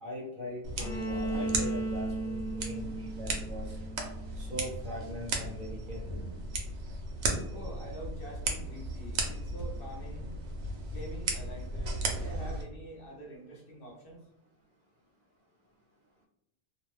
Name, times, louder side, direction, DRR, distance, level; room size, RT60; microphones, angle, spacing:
voice 1, 0.0-3.8 4.4-6.0, left 1 dB, 50° right, -2 dB, 0.8 m, -41 dB
sound 1, 0.6-12.6, right 2 dB, 80° right, 0.9 m, -36 dB
Bowed string instrument, 0.8-4.6, right 2 dB, 40° left, 0.4 m, -36 dB
voice 2, 7.5-10.3 10.9-14.2, right 1 dB, 60° left, -1 dB, 0.8 m, -46 dB
2.4 x 2.1 x 3.1 m, 0.81 s
omnidirectional pair, 1.2 m